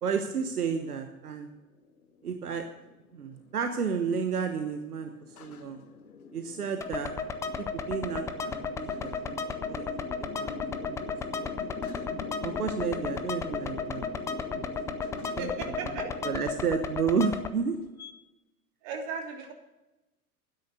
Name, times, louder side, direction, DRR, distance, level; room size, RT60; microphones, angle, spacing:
voice 1, 0.0-1.5 2.2-2.6 3.1-5.8 6.3-7.1 7.6-9.4 9.6-9.9 10.2-11.1 12.4-14.0 14.5-15.0 15.4-15.5 16.2-17.8, right 6 dB, 80° right, 6 dB, 1.2 m, -32 dB
sound 1, 1.7-18.1, left 6 dB, 75° left, 1.3 m, -43 dB
sound 2, 6.8-17.5, left 4 dB, 5° left, 0.3 m, -35 dB
voice 2, 15.2-16.2 18.8-19.5, right 4 dB, 45° right, 2 dB, 3.1 m, -36 dB
12.5 x 10.0 x 6.5 m, 1.0 s
figure-of-eight pair, 95°, 44 cm